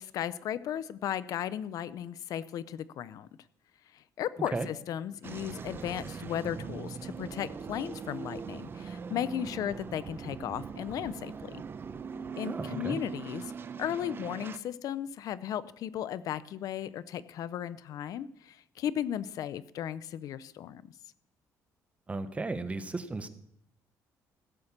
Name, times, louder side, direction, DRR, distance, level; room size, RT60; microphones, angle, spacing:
voice 1, 0.0-3.3 3.9-11.6 12.4-13.4 13.8-20.8, left 10 dB, 70° left, 17 dB, 0.5 m, -35 dB
sound 1, 5.2-14.6, right 6 dB, 35° right, 0.7 m, -41 dB
voice 2, 12.4-13.0 22.1-23.3, right 3 dB, 20° right, 11 dB, 1.1 m, -34 dB
16.0 x 6.6 x 7.2 m, 0.71 s
cardioid pair, 115°, 6 cm